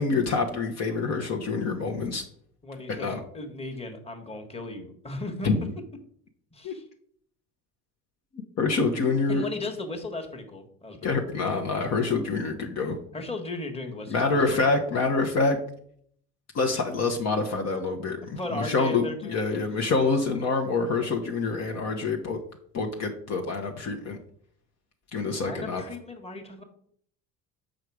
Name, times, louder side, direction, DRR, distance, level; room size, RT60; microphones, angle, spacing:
voice 1, 0.0-2.2 3.0-3.2 5.4-5.6 6.6-6.7 8.6-9.5 11.0-13.0 14.1-15.6 16.5-22.4 22.7-24.2 25.1-25.8, left 3 dB, 50° left, 3 dB, 1.1 m, -26 dB
voice 2, 2.6-5.5 6.5-6.8 9.3-11.1 13.1-15.0 18.4-19.6 25.3-26.6, left 2 dB, 15° left, 4 dB, 1.5 m, -36 dB
6.5 x 5.1 x 4.8 m, 0.64 s
hypercardioid pair, 70°, 34 cm